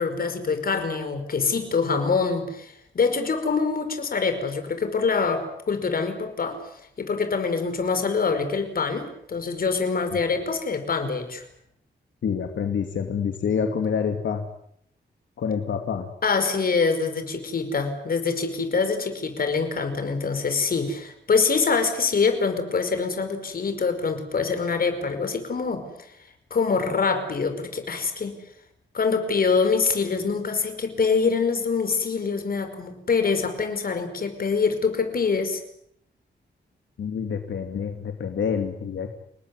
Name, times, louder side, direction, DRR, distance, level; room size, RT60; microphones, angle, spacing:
voice 1, 0.0-6.6 7.0-11.4 16.2-26.1 26.5-28.3 28.9-35.6, left 5 dB, 50° left, 8 dB, 5.2 m, -25 dB
voice 2, 12.2-14.4 15.4-16.1 37.0-39.1, left 6 dB, 85° left, 5 dB, 2.6 m, -27 dB
30.0 x 19.0 x 9.8 m, 0.72 s
wide cardioid pair, 135°, 19 cm